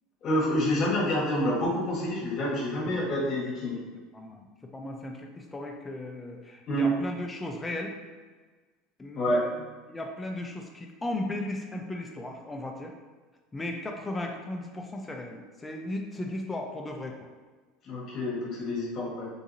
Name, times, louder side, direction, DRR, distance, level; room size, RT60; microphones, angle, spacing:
voice 1, 0.2-3.8 6.7-6.9 9.1-9.4 17.8-19.3, equal, 45° left, -4 dB, 1.2 m, -28 dB
voice 2, 2.7-3.0 4.1-7.9 9.0-9.6 9.9-12.9 13.5-17.3, left 1 dB, 15° left, 2 dB, 0.5 m, -36 dB
3.9 x 2.6 x 2.6 m, 1.4 s
supercardioid pair, 125°, 0 cm